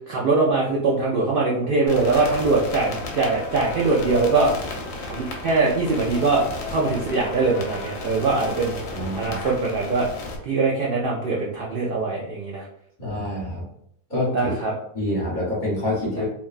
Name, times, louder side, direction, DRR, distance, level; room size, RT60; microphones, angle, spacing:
voice 1, 0.1-4.5 5.0-10.1 10.4-12.6 14.3-14.7, right 3 dB, 75° right, -3 dB, 0.5 m, -22 dB
sound 1, 1.9-10.4, left 2 dB, 70° left, 1.0 m, -34 dB
voice 2, 8.9-9.4 13.0-13.6 14.1-14.5 14.9-16.2, left 1 dB, 35° left, -7 dB, 1.2 m, -26 dB
3.2 x 2.2 x 2.4 m, 0.69 s
omnidirectional pair, 1.5 m